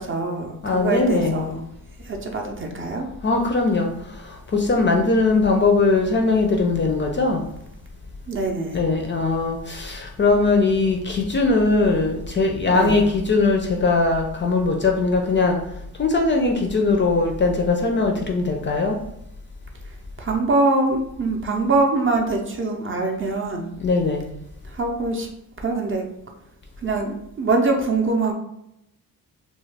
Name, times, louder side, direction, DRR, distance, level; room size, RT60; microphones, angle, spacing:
voice 1, 0.0-1.6 2.0-3.1 8.3-8.8 12.7-13.1 20.2-23.7 24.6-25.3 25.6-26.1 26.8-28.3, right 3 dB, 35° right, 2 dB, 0.5 m, -23 dB
voice 2, 0.6-1.5 3.2-3.9 4.5-7.4 8.7-15.6 16.0-19.0 23.8-24.3, left 3 dB, 35° left, 2 dB, 0.4 m, -20 dB
2.4 x 2.2 x 3.2 m, 0.80 s
cardioid pair, 85°, 36 cm